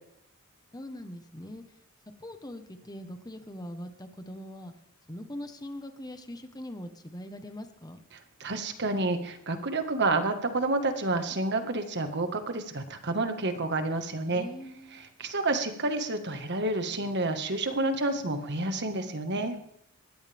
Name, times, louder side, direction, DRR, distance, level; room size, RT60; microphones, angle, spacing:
voice 1, 0.7-1.6 2.2-4.7 5.1-8.0 14.2-15.1, left 1 dB, 20° left, 7 dB, 1.4 m, -42 dB
voice 2, 8.4-14.5 15.0-19.5, right 2 dB, 55° right, 7 dB, 1.8 m, -29 dB
21.5 x 17.5 x 3.6 m, 0.71 s
head